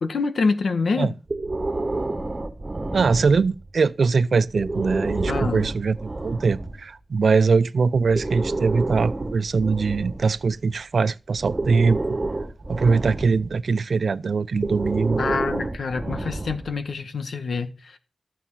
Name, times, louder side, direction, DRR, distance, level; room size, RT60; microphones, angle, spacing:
voice 1, 0.0-1.1 5.3-5.7 15.2-18.0, left 4 dB, 85° left, 1.7 m, -26 dB
Breathing, 1.3-3.7 4.5-6.8 7.9-10.8 11.4-13.6 14.5-16.8, right 2 dB, 25° right, 1.6 m, -29 dB
voice 2, 2.9-12.2 12.7-15.2, right 4 dB, 70° right, 0.5 m, -22 dB
14.5 x 7.5 x 5.7 m
wide cardioid pair, 110°, 0 cm